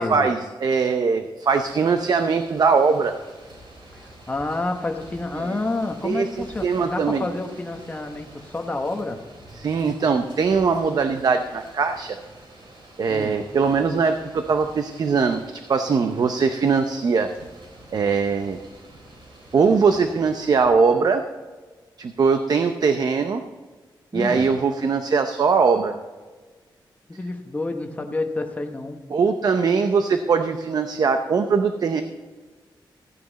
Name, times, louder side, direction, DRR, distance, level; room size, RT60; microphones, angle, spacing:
voice 1, 0.0-3.1 5.4-5.6 6.0-6.3 6.6-7.3 9.5-12.2 13.0-17.3 17.9-18.6 19.5-21.2 22.0-23.4 24.1-26.0 29.1-32.0, right 5 dB, 50° right, 7 dB, 0.6 m, -21 dB
sound 1, 1.5-20.7, right 1 dB, 85° right, 4.3 m, -47 dB
voice 2, 4.0-9.2 13.1-13.4 24.1-24.5 27.2-29.0, left 2 dB, 20° left, 4 dB, 1.1 m, -29 dB
15.0 x 9.4 x 4.1 m, 1.4 s
wide cardioid pair, 160°, 8 cm